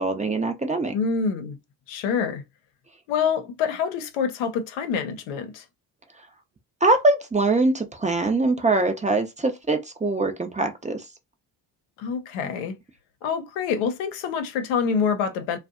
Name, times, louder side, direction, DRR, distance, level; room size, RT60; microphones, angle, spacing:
voice 1, 0.0-0.9 6.8-11.1, right 2 dB, 15° right, 0.5 m, -23 dB
voice 2, 0.9-1.6 1.9-2.4 3.1-5.6 12.0-12.8 13.2-15.6, left 6 dB, 80° left, 0.7 m, -26 dB
2.5 x 2.2 x 2.4 m
supercardioid pair, 65°, 46 cm